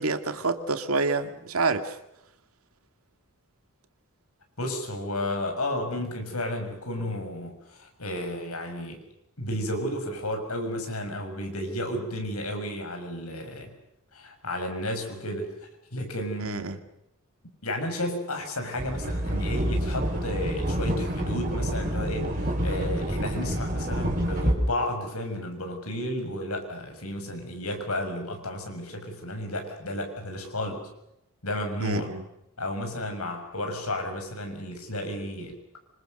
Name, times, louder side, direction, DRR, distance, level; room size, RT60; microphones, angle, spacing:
voice 1, 0.0-2.0 16.4-16.8 31.8-32.2, right 3 dB, 75° right, 8 dB, 2.2 m, -27 dB
voice 2, 4.6-9.0 9.4-13.7 14.1-15.5 15.9-16.7 17.6-30.9 31.4-32.1 32.6-35.6, left 1 dB, 85° left, 5 dB, 6.5 m, -32 dB
sound 1, 18.8-24.5, equal, 40° right, 5.2 m, -28 dB
26.5 x 26.0 x 6.7 m, 0.83 s
head